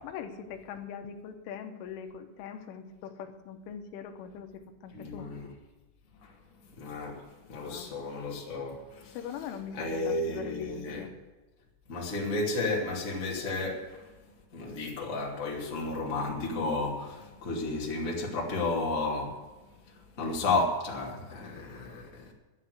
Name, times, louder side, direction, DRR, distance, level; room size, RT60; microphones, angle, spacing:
voice 1, 0.0-5.3 7.7-8.0 9.1-11.1, left 7 dB, 80° left, 3.4 m, -42 dB
voice 2, 4.9-5.5 6.2-6.3 6.8-7.2 7.5-9.2 9.7-11.0 11.9-14.1 14.5-19.4 20.2-22.3, left 2 dB, 25° left, 1.8 m, -32 dB
12.0 x 9.7 x 8.1 m
omnidirectional pair, 5.7 m